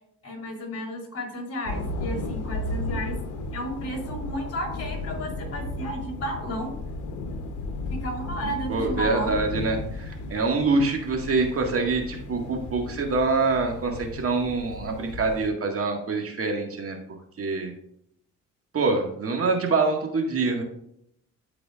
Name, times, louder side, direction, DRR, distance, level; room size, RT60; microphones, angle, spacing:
voice 1, 0.2-3.2 3.5-6.7 8.0-9.4, equal, 50° left, 1 dB, 3.2 m, -33 dB
sound 1, 1.7-15.5, left 2 dB, 85° left, 1.0 m, -34 dB
voice 2, 8.7-17.0 17.4-17.7 18.7-20.6, right 3 dB, 50° right, 2 dB, 1.9 m, -25 dB
13.0 x 4.8 x 2.5 m, 0.72 s
cardioid pair, 90°, 30 cm